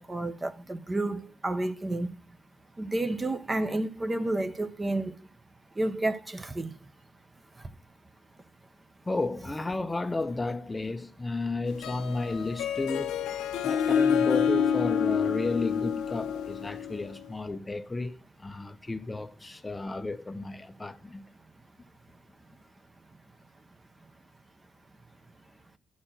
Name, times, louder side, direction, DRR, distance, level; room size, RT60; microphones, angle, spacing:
voice 1, 0.0-2.1 2.8-5.1 5.8-6.7, right 2 dB, 20° right, 0.8 m, -30 dB
voice 2, 9.1-13.2 13.6-21.3, left 3 dB, 20° left, 0.6 m, -33 dB
Harp, 11.7-17.2, left 7 dB, 90° left, 0.8 m, -28 dB
11.0 x 4.4 x 7.5 m
cardioid pair, 90°, 0 cm